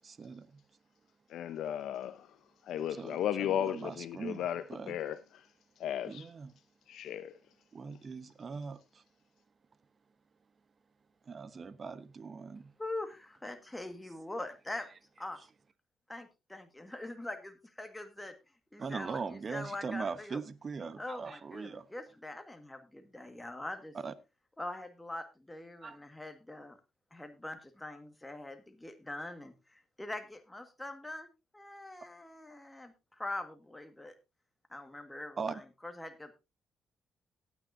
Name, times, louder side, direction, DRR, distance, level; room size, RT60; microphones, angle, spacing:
voice 1, 0.0-0.6 2.9-5.0 6.1-6.5 7.7-9.0 11.3-12.7 18.8-21.9 23.9-24.1 25.8-26.0 35.4-35.6, right 5 dB, 40° right, 1.0 m, -40 dB
voice 2, 1.3-2.3 2.6-5.5 5.8-6.3 6.9-7.3, left 10 dB, 75° left, 0.6 m, -35 dB
voice 3, 12.8-14.9 15.2-15.4 16.1-18.3 18.7-20.4 21.0-23.9 24.6-26.8 27.1-31.3 31.5-34.1 34.7-36.3, left 2 dB, 10° left, 1.6 m, -43 dB
18.0 x 9.2 x 2.6 m
cardioid pair, 80°, 0 cm